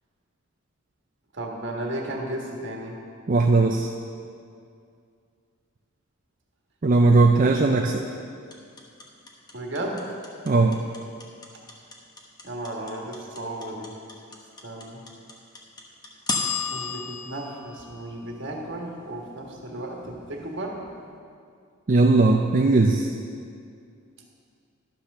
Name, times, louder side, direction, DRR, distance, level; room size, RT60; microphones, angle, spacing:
voice 1, 1.3-3.0 7.3-7.5 9.5-10.1 12.4-14.0 14.6-15.0 16.7-20.8, right 1 dB, 55° right, 0 dB, 1.5 m, -34 dB
voice 2, 3.3-3.9 6.8-8.0 10.5-10.8 21.9-23.1, right 3 dB, 40° right, 2 dB, 0.5 m, -18 dB
sound 1, 8.5-18.7, left 5 dB, 20° left, 1.0 m, -33 dB
12.0 x 5.7 x 6.5 m, 2.3 s
head